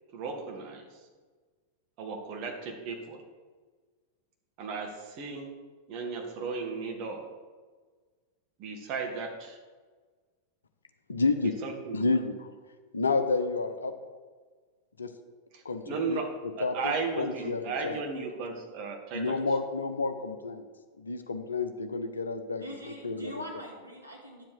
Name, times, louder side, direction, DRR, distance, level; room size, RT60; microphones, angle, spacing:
voice 1, 0.1-0.8 2.0-3.2 4.6-5.5 5.9-7.2 8.6-9.6 11.6-12.1 15.5-16.3 16.6-19.4, right 4 dB, 40° right, 2 dB, 1.8 m, -35 dB
voice 2, 11.1-11.5 11.9-12.5 12.9-13.9 15.0-15.1 15.6-16.2 16.6-16.7 17.2-18.0 19.1-20.6 21.0-22.6 23.0-23.3, left 3 dB, 75° left, 8 dB, 0.9 m, -29 dB
voice 3, 22.6-24.4, left 1 dB, 90° right, -2 dB, 2.4 m, -42 dB
11.0 x 7.5 x 4.8 m, 1.4 s
figure-of-eight pair, 90°, 0 cm